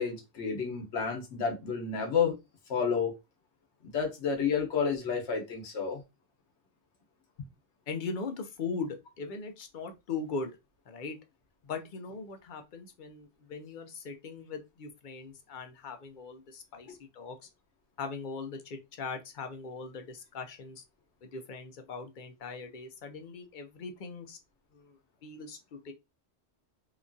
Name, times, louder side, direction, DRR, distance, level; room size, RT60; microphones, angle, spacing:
voice 1, 0.0-2.4 2.7-3.1 3.8-6.0 16.9-17.0, left 6 dB, 80° left, 1.1 m, -30 dB
voice 2, 7.9-10.6 10.9-11.2 11.6-17.5 18.0-20.8 21.2-24.4 24.7-25.9, left 4 dB, 55° left, 0.6 m, -40 dB
2.9 x 2.2 x 2.5 m
omnidirectional pair, 1.2 m